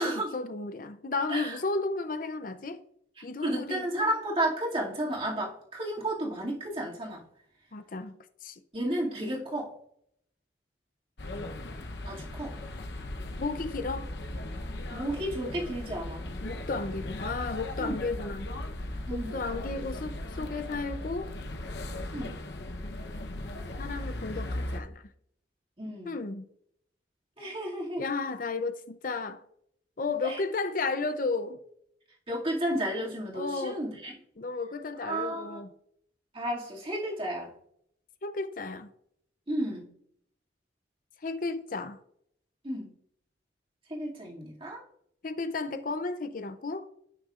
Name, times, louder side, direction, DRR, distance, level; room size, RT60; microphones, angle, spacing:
voice 1, 0.0-2.8 3.2-3.8 7.7-8.6 13.4-14.1 16.4-18.5 19.1-21.3 23.8-25.1 26.1-26.5 28.0-29.4 30.0-31.6 33.3-33.8 34.4-35.7 38.2-38.9 41.2-42.0 45.2-46.9, left 3 dB, 50° left, 0.5 m, -33 dB
voice 2, 3.2-7.2 8.7-9.7 12.1-12.6 14.9-16.3 17.8-18.1 19.1-19.4 22.1-22.4 25.8-26.2 27.4-28.0 30.2-30.4 32.3-34.1 35.0-35.6 36.3-37.5 39.5-39.9 42.6-42.9 43.9-44.8, right 1 dB, 30° right, 2.3 m, -32 dB
sound 1, 11.2-24.8, left 1 dB, 65° left, 0.9 m, -37 dB
15.5 x 6.3 x 2.5 m
head